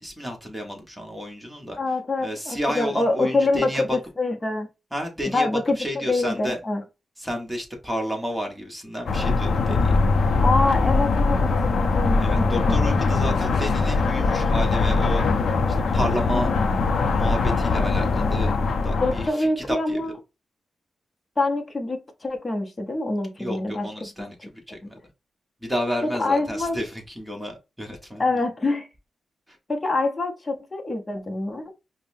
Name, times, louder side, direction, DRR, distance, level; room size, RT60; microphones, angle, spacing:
voice 1, 0.0-1.8 2.2-4.0 4.9-5.5 5.8-6.6 7.2-10.0 12.2-16.5 17.1-18.6 18.8-20.1 23.4-25.0 25.6-28.4 29.5-29.6, equal, 5° right, 1.2 m, -31 dB
voice 2, 1.8-4.7 5.2-5.8 6.1-6.8 10.4-12.8 16.3-16.5 19.0-20.2 21.4-24.1 26.0-26.8 28.2-28.9 29.7-31.7, left 2 dB, 25° left, 0.8 m, -25 dB
sound 1, 9.1-19.3, left 3 dB, 60° left, 0.5 m, -21 dB
5.2 x 2.1 x 2.6 m
wide cardioid pair, 120°, 0 cm